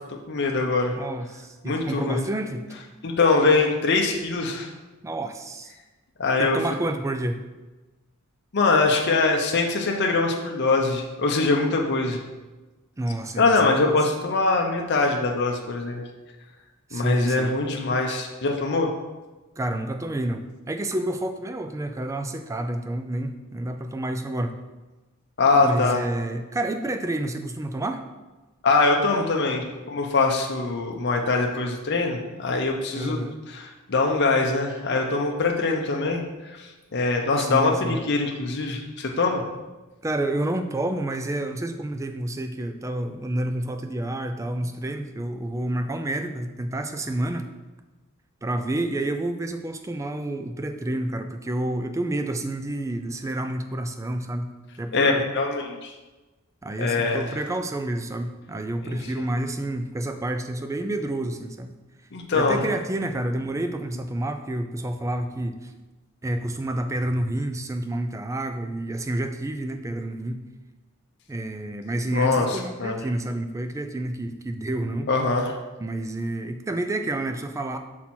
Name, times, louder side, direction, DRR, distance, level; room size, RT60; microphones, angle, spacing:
voice 1, 0.3-0.9 1.6-2.2 3.0-4.7 6.2-6.6 8.5-12.2 13.4-16.0 16.9-18.9 25.4-26.0 28.6-39.4 54.9-55.9 56.8-57.3 58.9-59.0 62.1-62.6 72.1-73.0 75.1-75.6, left 3 dB, 55° left, 1 dB, 0.6 m, -23 dB
voice 2, 0.9-2.8 5.0-5.7 6.4-7.4 13.0-13.9 16.9-17.5 19.6-24.6 25.6-28.0 33.0-33.4 37.4-38.0 40.0-47.5 48.4-55.2 56.6-61.8 62.3-65.7 66.2-70.5 71.3-75.1 75.8-77.8, right 1 dB, 15° right, 7 dB, 0.3 m, -29 dB
5.9 x 4.2 x 4.3 m, 1.2 s
head